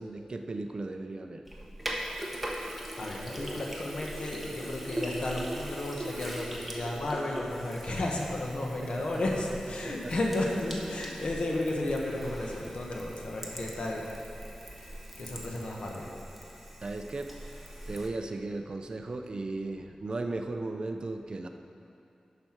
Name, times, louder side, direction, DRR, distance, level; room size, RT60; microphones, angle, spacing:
voice 1, 0.0-1.4 8.8-9.1 9.5-9.6 9.8-10.1 16.8-17.3 17.9-21.5, right 2 dB, 45° right, 5 dB, 0.5 m, -36 dB
Sink (filling or washing), 1.5-18.1, right 1 dB, 5° right, 1.1 m, -41 dB
voice 2, 2.4-14.1 14.7-14.9 15.2-16.1, left 1 dB, 60° left, -1 dB, 1.3 m, -33 dB
11.5 x 5.8 x 4.5 m, 2.8 s
wide cardioid pair, 115°, 2 cm